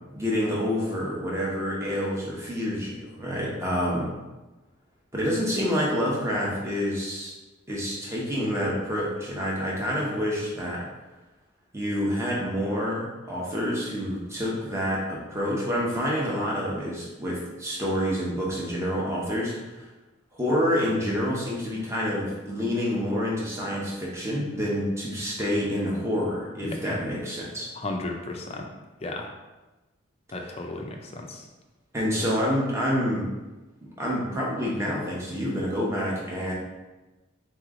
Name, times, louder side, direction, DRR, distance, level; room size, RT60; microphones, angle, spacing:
voice 1, 0.1-4.1 5.1-7.3 7.7-10.9 11.7-19.8 20.3-27.7 31.9-33.3 34.0-36.5, equal, 15° right, -4 dB, 0.9 m, -28 dB
voice 2, 26.6-27.0 27.7-28.7 29.0-29.3 30.3-31.5, left 2 dB, 30° left, 2 dB, 0.5 m, -34 dB
3.9 x 3.1 x 3.7 m, 1.1 s
head